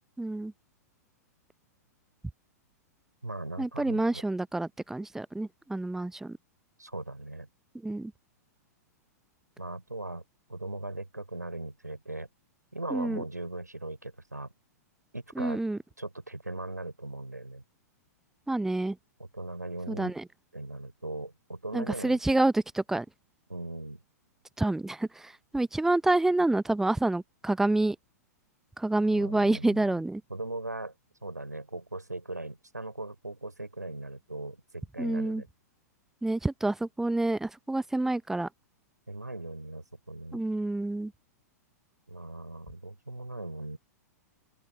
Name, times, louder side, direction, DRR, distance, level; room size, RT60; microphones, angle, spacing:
voice 1, 0.2-0.5 3.6-6.4 7.8-8.1 12.9-13.2 15.4-15.8 18.5-19.0 19.9-20.2 21.7-23.0 24.6-28.0 28.8-30.2 35.0-35.4 36.2-38.5 40.3-41.1, right 2 dB, 5° right, 1.0 m, -28 dB
voice 2, 3.2-4.2 6.8-7.5 9.6-10.2 10.5-12.3 12.7-14.5 15.1-15.6 16.0-17.6 19.2-20.2 20.5-22.2 23.5-24.0 29.1-30.0 30.3-30.9 31.2-35.5 39.1-40.4 42.1-43.8, right 2 dB, 85° right, 4.0 m, -39 dB
open air
figure-of-eight pair, 100°, 9 cm